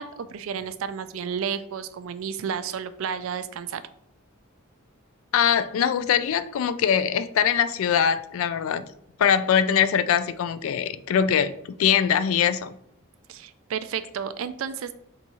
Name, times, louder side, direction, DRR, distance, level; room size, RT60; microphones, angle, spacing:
voice 1, 0.0-3.8 13.3-14.9, right 7 dB, 70° right, 0.3 m, -32 dB
voice 2, 5.3-8.9 9.2-12.7, left 8 dB, 70° left, 0.3 m, -22 dB
3.5 x 2.9 x 4.0 m
head